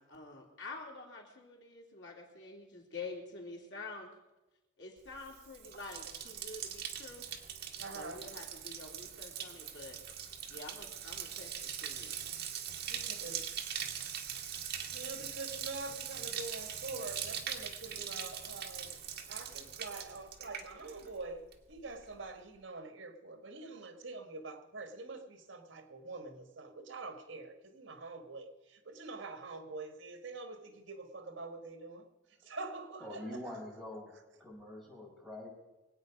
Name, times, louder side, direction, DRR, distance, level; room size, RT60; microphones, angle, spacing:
voice 1, 0.0-4.1 4.8-7.2 7.9-10.0 10.5-12.2, left 3 dB, 65° left, -1 dB, 3.2 m, -47 dB
Bathtub (filling or washing), 5.1-21.2 21.5-22.0, right 8 dB, 60° right, 1.6 m, -42 dB
voice 2, 7.8-8.3 12.9-13.5 14.1-14.4 14.8-18.9 19.3-33.6, right 3 dB, 80° right, 7 dB, 1.6 m, -45 dB
voice 3, 33.0-34.1 34.4-35.5, left 1 dB, ahead, -4 dB, 5.1 m, -45 dB
24.0 x 8.9 x 5.1 m, 1.1 s
head